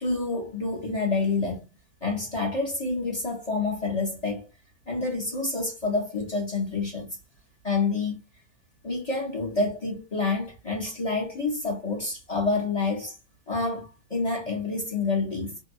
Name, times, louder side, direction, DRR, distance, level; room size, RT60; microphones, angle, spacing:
voice 1, 0.0-1.6 2.0-4.5 4.9-7.1 7.6-8.2 8.8-13.2 13.5-15.6, left 3 dB, 30° left, 0.8 m, -28 dB
2.8 x 2.1 x 2.5 m
omnidirectional pair, 1.7 m